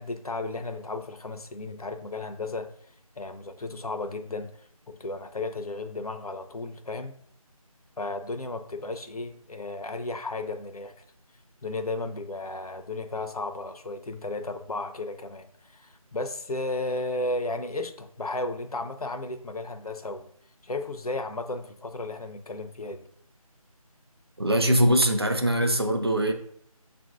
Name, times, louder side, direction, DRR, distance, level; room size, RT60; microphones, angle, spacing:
voice 1, 0.0-2.7 3.2-7.1 8.0-10.9 11.6-20.3 20.6-23.1, left 2 dB, 80° left, 8 dB, 0.5 m, -34 dB
voice 2, 24.4-26.3, equal, 45° right, 4 dB, 0.4 m, -22 dB
6.8 x 2.5 x 2.4 m, 0.67 s
figure-of-eight pair, 165°, 19 cm